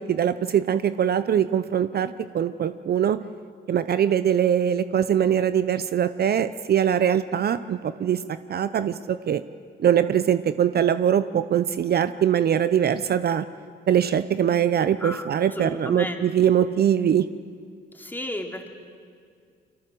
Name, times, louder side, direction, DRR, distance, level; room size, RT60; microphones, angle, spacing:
voice 1, 0.0-3.2 3.7-9.4 9.8-13.5 13.9-17.3, right 9 dB, 55° right, 13 dB, 0.7 m, -22 dB
voice 2, 15.5-16.3 17.9-18.7, left 1 dB, 10° left, 3 dB, 3.1 m, -33 dB
30.0 x 23.5 x 7.7 m, 2.2 s
cardioid pair, 90°, 20 cm